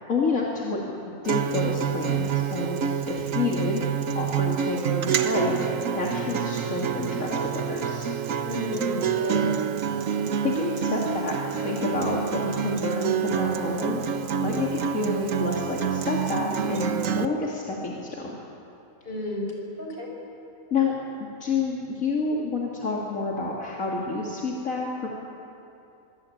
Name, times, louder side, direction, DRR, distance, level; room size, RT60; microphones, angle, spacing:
voice 1, 0.1-0.9 1.2-3.9 4.1-5.5 5.9-8.1 10.4-11.4 11.6-14.0 14.4-18.4 20.7-25.1, left 3 dB, 60° left, -3 dB, 2.8 m, -29 dB
Acoustic guitar, 1.2-17.3, right 7 dB, 65° right, 1.3 m, -27 dB
voice 2, 8.4-9.4 19.0-20.1, left 1 dB, 35° left, -1 dB, 5.5 m, -32 dB
24.5 x 20.5 x 8.7 m, 2.8 s
omnidirectional pair, 1.6 m